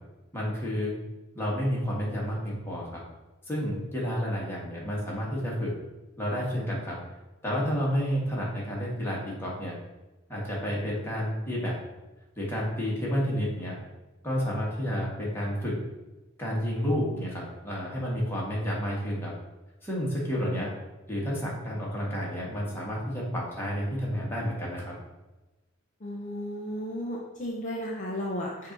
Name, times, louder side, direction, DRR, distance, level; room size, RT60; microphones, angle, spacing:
voice 1, 0.3-0.9 1.3-3.0 3.5-5.7 6.2-7.0 7.4-9.7 10.3-11.7 12.3-13.8 14.2-15.7 16.4-19.3 19.8-20.7 21.1-24.8, equal, 10° left, -5 dB, 1.7 m, -30 dB
voice 2, 26.0-28.7, equal, 35° left, -3 dB, 0.8 m, -34 dB
6.8 x 2.8 x 5.2 m, 1.1 s
head